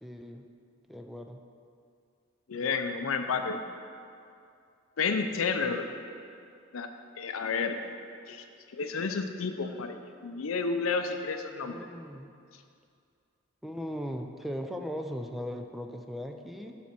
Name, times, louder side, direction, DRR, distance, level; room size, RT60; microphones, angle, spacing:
voice 1, 0.0-0.5 0.9-1.4 11.6-12.3 13.6-16.8, equal, ahead, 4 dB, 0.3 m, -38 dB
voice 2, 2.5-3.6 5.0-5.9 6.7-6.9 7.2-7.8 8.3-8.4 8.7-10.0 10.2-11.9, left 5 dB, 80° left, 7 dB, 0.5 m, -31 dB
12.0 x 4.2 x 4.4 m, 2.4 s
head